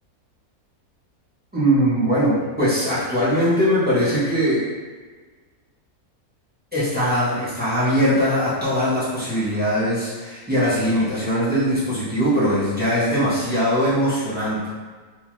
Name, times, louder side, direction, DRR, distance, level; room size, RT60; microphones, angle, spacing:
voice 1, 1.5-4.7 6.7-14.7, equal, 10° right, -11 dB, 0.5 m, -21 dB
2.8 x 2.2 x 3.1 m, 1.4 s
omnidirectional pair, 1.6 m